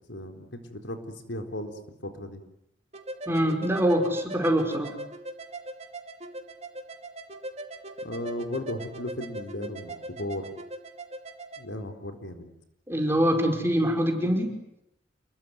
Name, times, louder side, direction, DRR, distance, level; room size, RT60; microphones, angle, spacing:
voice 1, 0.1-2.4 8.0-10.5 11.6-12.4, left 1 dB, 85° left, 6 dB, 4.1 m, -36 dB
sound 1, 2.9-11.6, right 1 dB, 35° right, 2.5 m, -40 dB
voice 2, 3.3-5.0 12.9-14.6, equal, 15° right, 3 dB, 5.1 m, -24 dB
28.5 x 22.0 x 9.5 m, 0.81 s
head